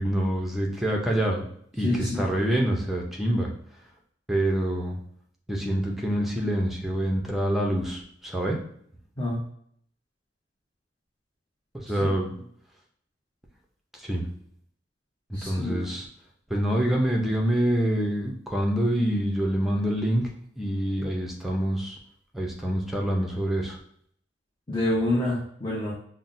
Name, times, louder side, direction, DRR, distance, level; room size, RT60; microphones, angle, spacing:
voice 1, 0.0-1.4 1.7-3.5 4.3-5.0 5.5-8.6 11.7-12.3 14.0-14.3 15.3-16.1 16.5-20.3 20.6-22.0 22.3-23.8, right 1 dB, ahead, 0 dB, 0.6 m, -26 dB
voice 2, 1.8-2.2 9.2-9.4 12.0-12.1 15.3-15.9 24.7-25.9, left 1 dB, 25° left, -7 dB, 0.8 m, -27 dB
5.6 x 2.1 x 2.6 m, 0.64 s
head